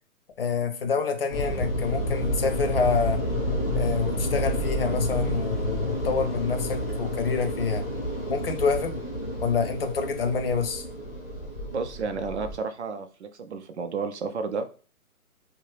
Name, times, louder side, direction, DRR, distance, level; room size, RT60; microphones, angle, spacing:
voice 1, 0.4-3.2 3.7-7.8 8.3-9.0 9.4-10.8, left 5 dB, 40° left, 6 dB, 0.5 m, -27 dB
sound 1, 1.3-12.6, left 1 dB, 5° right, 0.6 m, -29 dB
voice 2, 11.6-14.8, right 4 dB, 50° right, 8 dB, 0.5 m, -32 dB
2.9 x 2.2 x 3.2 m, 0.38 s
hypercardioid pair, 145°, 44 cm